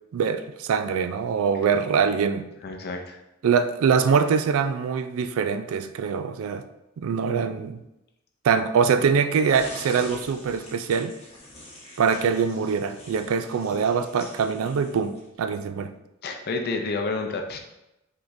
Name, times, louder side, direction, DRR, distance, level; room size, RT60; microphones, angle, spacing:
voice 1, 0.1-2.5 3.4-6.6 7.0-7.8 8.4-11.2 12.0-15.9, right 6 dB, 70° right, 0.3 m, -23 dB
voice 2, 2.6-3.2 16.2-17.6, left 3 dB, 50° left, 0.5 m, -29 dB
sound 1, 9.5-15.4, left 1 dB, 30° left, 1.3 m, -44 dB
4.8 x 3.7 x 2.6 m
head